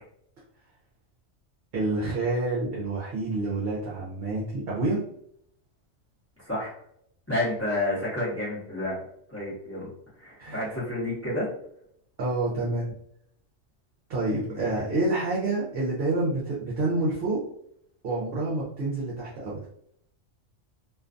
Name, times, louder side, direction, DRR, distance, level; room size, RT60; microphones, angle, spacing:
voice 1, 1.7-5.0 10.4-10.7 12.2-12.9 14.1-17.4 18.0-19.6, right 2 dB, 55° right, -5 dB, 0.8 m, -28 dB
voice 2, 7.3-9.0 9.3-9.9 10.2-11.5 14.4-14.6, left 1 dB, 15° left, -9 dB, 0.9 m, -30 dB
2.5 x 2.3 x 2.5 m, 0.71 s
omnidirectional pair, 1.3 m